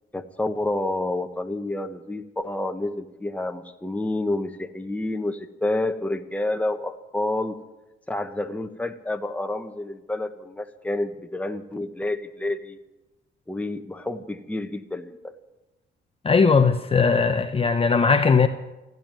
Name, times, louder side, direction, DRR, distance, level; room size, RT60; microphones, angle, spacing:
voice 1, 0.1-7.6 8.1-12.8 13.5-15.2, left 2 dB, 5° left, 1.1 m, -29 dB
voice 2, 16.2-18.5, left 5 dB, 30° left, 0.8 m, -19 dB
15.0 x 9.3 x 9.1 m
cardioid pair, 90°, 20 cm